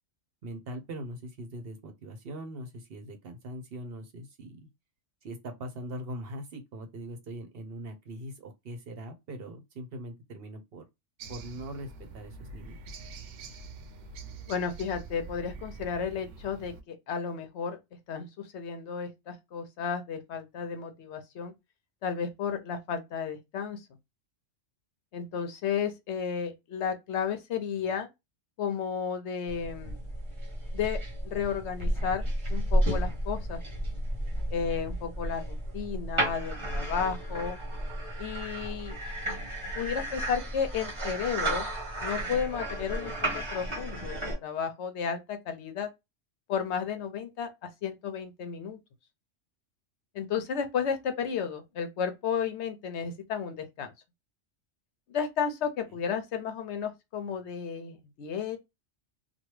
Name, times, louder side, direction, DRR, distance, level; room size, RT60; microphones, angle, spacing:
voice 1, 0.4-4.7 5.2-10.8 11.3-12.8 55.9-56.0, right 1 dB, 60° right, 0.8 m, -41 dB
sound 1, 11.2-16.8, right 3 dB, 85° right, 0.9 m, -45 dB
voice 2, 14.5-17.8 18.1-21.5 22.0-23.8 25.1-28.1 28.6-30.0 30.7-31.0 31.2-33.6 34.5-37.6 38.2-39.0 39.7-41.7 42.0-45.9 46.5-48.8 50.1-53.9 55.1-58.6, left 7 dB, 70° left, 0.9 m, -33 dB
sound 2, 29.5-44.4, right 1 dB, 25° right, 1.0 m, -32 dB
3.0 x 2.3 x 3.1 m
omnidirectional pair, 1.2 m